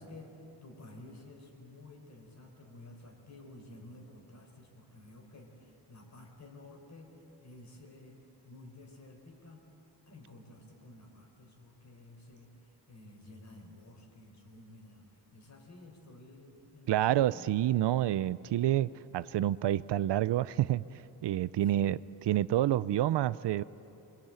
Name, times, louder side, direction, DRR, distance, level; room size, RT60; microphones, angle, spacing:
voice 1, 0.0-8.2 8.4-9.6 10.1-17.5 21.6-22.0, left 2 dB, 40° left, 3 dB, 4.5 m, -52 dB
voice 2, 16.9-20.8 21.2-22.0 22.3-23.6, right 13 dB, 75° right, 17 dB, 0.6 m, -28 dB
27.0 x 23.5 x 8.9 m, 2.9 s
wide cardioid pair, 165°, 42 cm